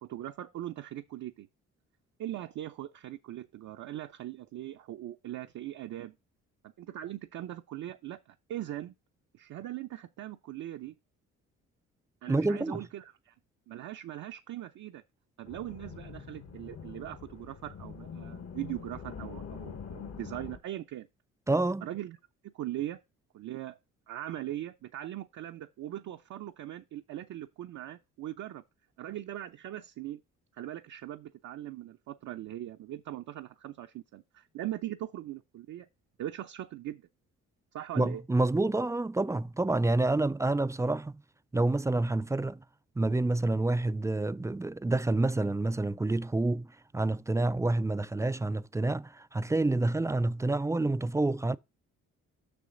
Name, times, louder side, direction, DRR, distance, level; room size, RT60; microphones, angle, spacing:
voice 1, 0.0-1.5 2.2-6.2 6.6-8.9 9.3-10.9 12.2-13.3 13.7-15.0 15.4-21.1 21.8-22.2 22.5-23.0 23.3-23.8 24.1-28.6 29.0-30.2 30.5-35.9 36.2-37.1 37.7-38.2, right 13 dB, 65° right, 0.7 m, -40 dB
voice 2, 12.3-12.8 21.5-21.9 38.0-41.2 41.5-42.6 43.0-46.7 46.9-51.6, right 2 dB, 10° right, 0.3 m, -28 dB
sound 1, 15.4-20.6, left 6 dB, 50° left, 1.3 m, -44 dB
6.9 x 6.1 x 3.8 m
supercardioid pair, 65°, 32 cm